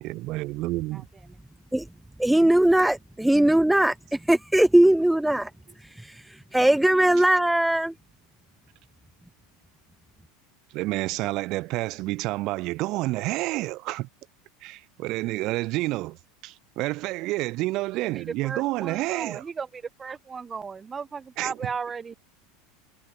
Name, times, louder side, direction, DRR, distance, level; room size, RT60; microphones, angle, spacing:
voice 1, 0.0-1.1 2.4-2.5 10.7-14.1 14.6-16.2 16.4-19.4 21.4-21.5, right 19 dB, 55° right, 0.8 m, -29 dB
voice 2, 0.9-1.4 17.9-22.1, right 5 dB, 20° right, 1.4 m, -36 dB
voice 3, 2.2-5.5 6.0-6.2 6.5-7.9, right 1 dB, 5° right, 0.7 m, -20 dB
supercardioid pair, 120°, 0 cm